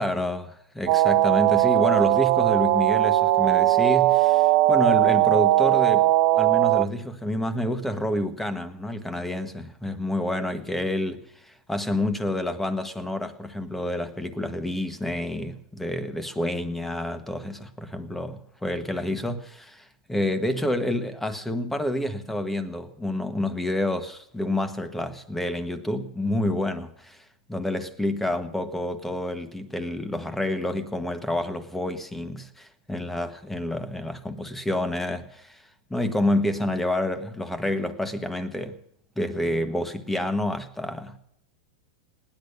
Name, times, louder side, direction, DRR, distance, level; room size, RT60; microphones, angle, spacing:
voice 1, 0.0-27.2 27.5-35.6 35.9-38.8 39.2-41.2, left 1 dB, 5° left, 1.3 m, -28 dB
sound 1, 0.9-6.9, right 16 dB, 50° right, 0.7 m, -19 dB
18.0 x 10.5 x 6.6 m
supercardioid pair, 135°, 4 cm